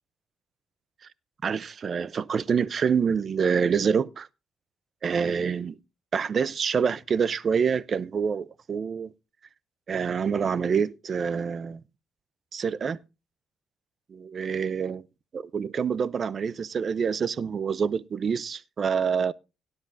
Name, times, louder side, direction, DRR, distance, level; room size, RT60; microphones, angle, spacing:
voice 1, 1.4-4.3 5.0-5.8 6.1-9.1 9.9-11.8 12.5-13.0 14.1-15.0 15.3-19.3, right 6 dB, 45° right, 0.5 m, -26 dB
17.5 x 10.5 x 2.6 m
cardioid pair, 90°, 0 cm